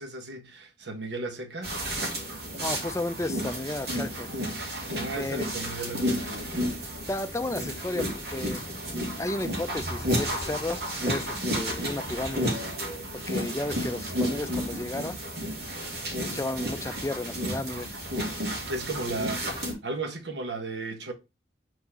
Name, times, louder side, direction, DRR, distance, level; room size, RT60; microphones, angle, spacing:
voice 1, 0.0-1.8 4.9-6.7 18.6-21.1, right 2 dB, 85° right, 1.2 m, -35 dB
sound 1, 1.6-19.7, equal, 60° right, 2.3 m, -32 dB
voice 2, 2.6-4.3 5.1-5.5 7.1-8.6 9.2-12.6 13.3-15.2 16.3-18.0, left 2 dB, 15° left, 0.4 m, -33 dB
4.9 x 4.0 x 4.9 m
head